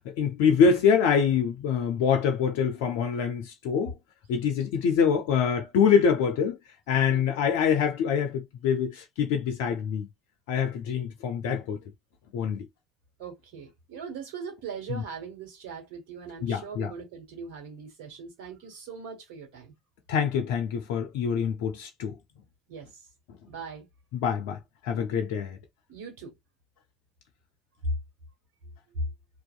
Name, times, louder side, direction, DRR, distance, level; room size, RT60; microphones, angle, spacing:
voice 1, 0.1-3.9 4.3-6.6 6.9-10.1 10.5-11.8 12.3-12.7 14.9-15.0 16.4-16.9 20.1-22.2 24.1-25.6, left 7 dB, 75° left, 0.4 m, -25 dB
voice 2, 13.2-19.7 22.7-23.0 23.4-23.9 25.9-26.3 28.9-29.1, right 4 dB, 70° right, 1.3 m, -40 dB
2.6 x 2.3 x 2.3 m
hypercardioid pair, 60°, 0 cm